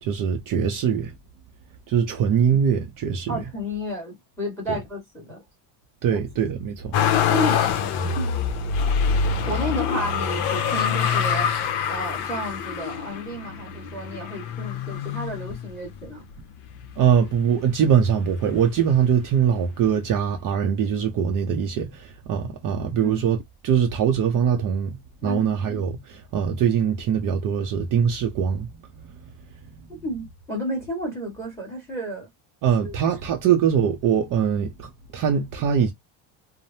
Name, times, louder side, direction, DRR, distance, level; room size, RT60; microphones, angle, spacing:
voice 1, 0.0-1.1 1.9-3.3 6.0-7.0 17.0-23.4 23.6-28.7 29.0-29.1 32.6-35.9, right 8 dB, 45° right, 0.6 m, -22 dB
voice 2, 3.3-5.4 6.1-6.2 7.3-7.7 8.0-8.3 9.5-16.2 23.0-23.2 25.2-25.5 29.9-32.3 32.8-33.0, equal, 5° left, 1.4 m, -32 dB
Motor vehicle (road), 6.9-16.1 16.7-17.5 17.7-18.9 19.9-20.0, left 7 dB, 55° left, 0.7 m, -25 dB
3.2 x 2.0 x 2.6 m
cardioid pair, 135°, 47 cm